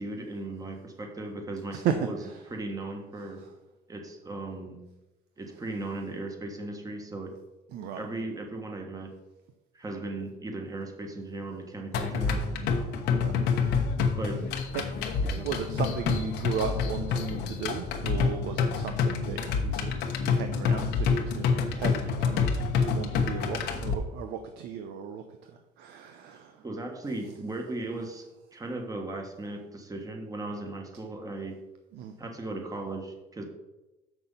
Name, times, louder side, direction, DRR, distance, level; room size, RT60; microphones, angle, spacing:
voice 1, 0.0-2.2 2.5-3.4 3.9-4.8 5.4-7.3 8.0-9.1 9.7-12.4 14.2-14.5 15.2-15.5 26.6-28.3 28.5-31.6 32.2-33.4, right 2 dB, 20° right, 3 dB, 1.5 m, -37 dB
voice 2, 1.7-2.4 3.4-3.5 7.7-8.1 13.1-13.8 14.7-14.8 15.2-20.0 20.3-26.6 31.9-32.2, right 7 dB, 80° right, 6 dB, 0.7 m, -36 dB
sound 1, 11.9-23.9, left 5 dB, 85° left, 1.1 m, -27 dB
6.9 x 6.1 x 5.6 m, 1.0 s
cardioid pair, 110°, 17 cm